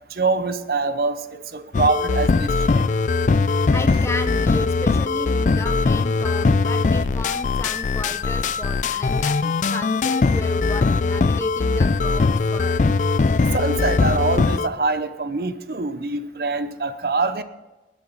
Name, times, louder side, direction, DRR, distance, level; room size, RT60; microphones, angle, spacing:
voice 1, 0.1-1.2 1.5-2.9 13.5-17.4, right 3 dB, 60° right, 12 dB, 0.7 m, -24 dB
sound 1, 1.7-14.7, left 4 dB, 45° left, 0.4 m, -20 dB
voice 2, 3.7-12.8, left 2 dB, 15° left, 8 dB, 0.7 m, -33 dB
20.0 x 8.5 x 4.1 m, 1.1 s
head